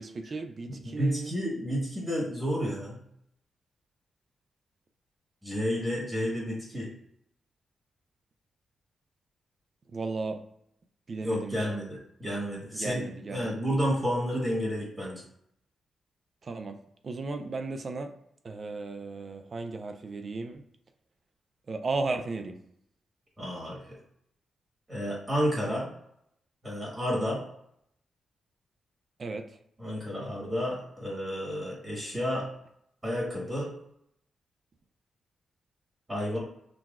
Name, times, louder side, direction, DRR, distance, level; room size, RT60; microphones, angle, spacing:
voice 1, 0.0-1.3 9.9-10.4 11.1-11.8 12.7-13.5 16.4-16.8 17.0-18.1 18.4-20.6 21.7-22.6 29.2-29.4, right 3 dB, 40° right, 7 dB, 0.4 m, -35 dB
voice 2, 0.7-3.0 5.4-6.9 11.2-15.2 23.4-23.8 24.9-25.9 26.6-27.4 29.8-32.5 33.0-33.7 36.1-36.4, equal, 20° right, -5 dB, 1.4 m, -31 dB
5.9 x 2.2 x 2.4 m, 0.75 s
wide cardioid pair, 135°, 0 cm